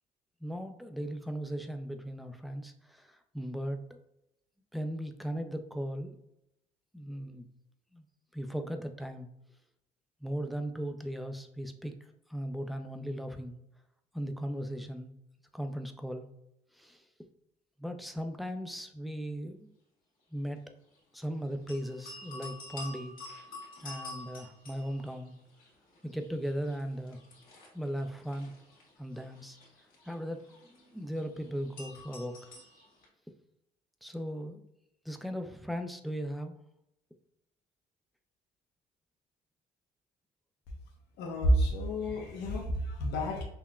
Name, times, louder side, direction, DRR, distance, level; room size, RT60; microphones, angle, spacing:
voice 1, 0.4-4.0 4.7-6.2 6.9-7.4 7.9-8.0 8.3-9.3 10.2-12.0 12.3-13.6 14.1-15.1 15.5-16.3 16.7-17.1 17.8-19.7 20.3-20.6 21.1-23.2 23.8-25.3 26.0-27.2 27.7-28.5 29.0-29.6 30.1-32.5 34.0-34.6 35.1-36.6, equal, ahead, 6 dB, 0.3 m, -37 dB
sound 1, 21.7-25.7 25.9-33.0, left 2 dB, 55° left, 1.5 m, -48 dB
voice 2, 41.2-43.4, equal, 80° left, 1 dB, 0.7 m, -29 dB
5.5 x 2.1 x 2.3 m, 0.81 s
cardioid pair, 110°, 17 cm